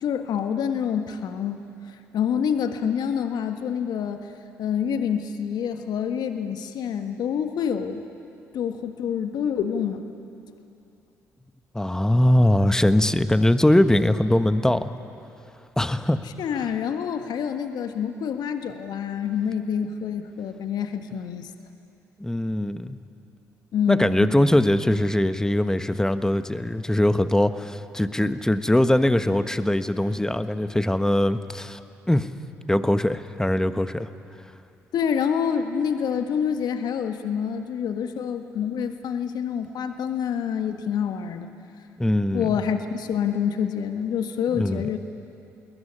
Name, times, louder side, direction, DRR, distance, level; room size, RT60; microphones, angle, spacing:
voice 1, 0.0-1.6 1.9-4.3 4.6-8.0 8.5-10.0 16.4-21.5 23.7-24.3 34.9-41.5 42.3-45.0, left 7 dB, 60° left, 7 dB, 1.6 m, -27 dB
voice 2, 11.7-14.8 15.8-16.2 22.2-23.0 23.9-31.8 32.1-32.3 32.7-34.1 42.0-42.5 44.5-44.9, left 1 dB, 5° left, 10 dB, 1.4 m, -21 dB
27.5 x 21.0 x 10.0 m, 2.7 s
hypercardioid pair, 45°, 8 cm